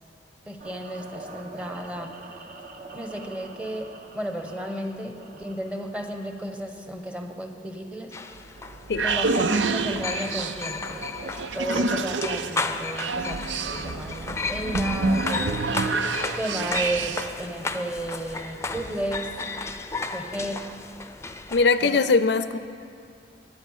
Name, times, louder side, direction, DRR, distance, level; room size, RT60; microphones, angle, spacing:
voice 1, 0.5-2.1 2.9-8.1 9.0-15.6 16.4-19.3 20.1-20.7 21.8-22.0, right 1 dB, 10° right, 5 dB, 1.0 m, -33 dB
sound 1, 0.6-6.5, right 3 dB, 50° right, 1.4 m, -44 dB
sound 2, 8.1-22.0, left 3 dB, 15° left, 0.6 m, -34 dB
sound 3, 8.4-17.4, right 3 dB, 90° right, 0.6 m, -28 dB
voice 2, 21.5-22.6, left 4 dB, 70° left, 12 dB, 0.5 m, -21 dB
22.5 x 9.4 x 5.6 m, 2.3 s
head